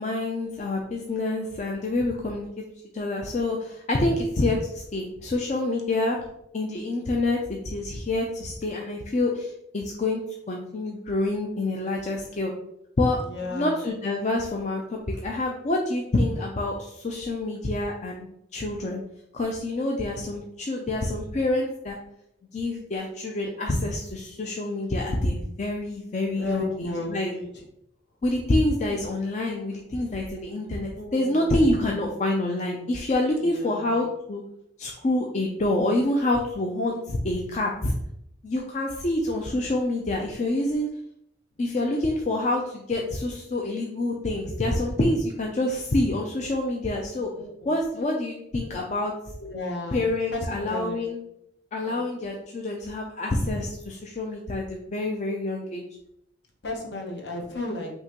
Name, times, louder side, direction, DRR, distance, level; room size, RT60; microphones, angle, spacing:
voice 1, 0.0-2.5 2.9-6.2 6.5-12.5 13.0-19.0 19.3-22.0 22.5-27.3 28.2-34.4 34.8-37.9 38.4-40.9 41.6-47.3 47.7-49.1 49.9-51.2 51.7-55.8, left 2 dB, 40° left, 0 dB, 0.4 m, -27 dB
voice 2, 13.2-13.8 26.3-27.5 30.9-31.4 31.7-32.1 33.4-33.9 47.3-47.7 49.4-50.0 50.3-51.0 51.8-52.1 56.6-57.9, left 2 dB, 65° left, 0 dB, 1.0 m, -34 dB
5.5 x 2.8 x 2.9 m, 0.76 s
head